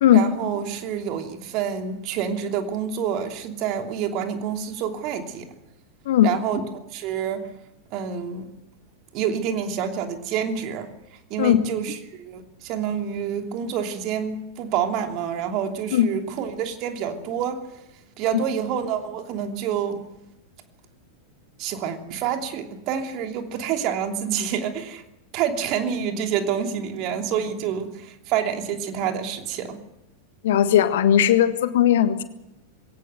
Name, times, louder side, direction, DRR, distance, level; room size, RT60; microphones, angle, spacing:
voice 1, 0.1-5.5 6.2-6.6 6.9-7.5 7.9-8.5 9.1-10.9 11.3-17.6 18.2-20.0 21.6-25.0 25.3-29.8, right 8 dB, 40° right, 5 dB, 3.0 m, -27 dB
voice 2, 30.4-32.2, left 10 dB, 55° left, 11 dB, 1.6 m, -17 dB
22.0 x 18.0 x 8.0 m, 0.89 s
figure-of-eight pair, 90°, 0 cm